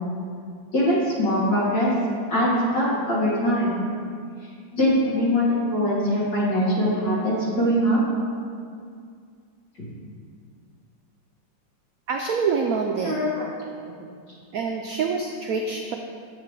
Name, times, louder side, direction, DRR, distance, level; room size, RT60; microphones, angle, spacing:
voice 1, 0.7-1.9 2.3-3.8 4.7-8.0 13.0-13.5 13.9-14.0, equal, 70° left, -7 dB, 2.7 m, -22 dB
voice 2, 12.1-13.2 14.5-16.0, right 5 dB, 90° right, 3 dB, 0.7 m, -26 dB
8.1 x 7.7 x 3.2 m, 2.2 s
omnidirectional pair, 2.1 m